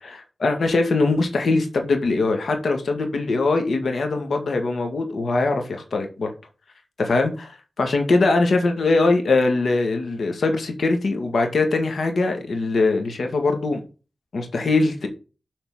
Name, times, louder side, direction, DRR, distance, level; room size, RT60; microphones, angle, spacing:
voice 1, 0.0-6.3 7.0-7.5 7.8-13.8 14.3-15.1, left 3 dB, 75° left, 4 dB, 1.9 m, -22 dB
8.0 x 4.3 x 5.5 m, 0.33 s
cardioid pair, 50°, 0 cm